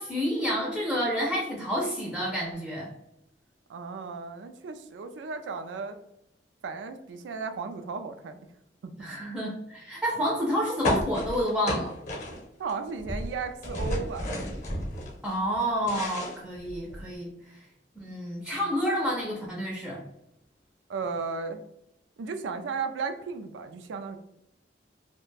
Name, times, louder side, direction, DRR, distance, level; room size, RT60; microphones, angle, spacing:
voice 1, 0.0-2.9 9.0-11.9 15.2-17.6 18.0-20.0, equal, ahead, -3 dB, 0.4 m, -29 dB
voice 2, 3.7-6.0 6.6-8.5 8.8-8.9 12.6-14.4 20.9-21.6 22.2-24.2, right 5 dB, 85° right, 8 dB, 0.3 m, -35 dB
sound 1, 10.8-12.7 13.0-15.1 15.5-17.1, left 1 dB, 45° left, 0.7 m, -32 dB
2.3 x 2.1 x 3.2 m, 0.80 s
head